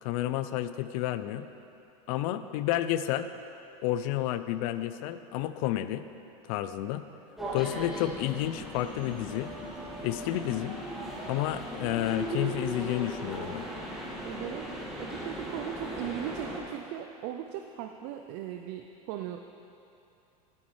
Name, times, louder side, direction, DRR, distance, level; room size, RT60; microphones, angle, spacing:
voice 1, 0.0-1.5 2.1-3.3 3.8-6.0 6.5-7.0 7.5-9.5 10.0-10.8 11.2-13.6, left 13 dB, 65° left, 12 dB, 0.5 m, -30 dB
sound 1, 7.4-16.6, right 1 dB, ahead, 1.8 m, -38 dB
voice 2, 14.2-14.7 15.0-19.5, right 11 dB, 60° right, 5 dB, 0.5 m, -38 dB
12.0 x 8.7 x 3.2 m, 2.7 s
hypercardioid pair, 100°, 19 cm